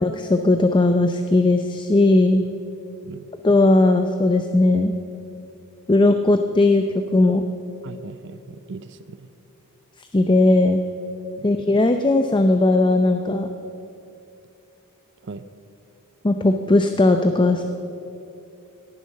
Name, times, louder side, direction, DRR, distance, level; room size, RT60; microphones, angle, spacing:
voice 1, 0.0-2.4 3.4-5.0 5.9-6.9 7.1-7.4 10.1-10.8 11.4-13.5 16.2-17.6, left 2 dB, 20° left, 7 dB, 0.6 m, -17 dB
voice 2, 7.8-9.3 11.4-11.5 15.2-15.5, right 4 dB, 55° right, 13 dB, 0.6 m, -38 dB
18.0 x 11.0 x 6.5 m, 2.7 s
head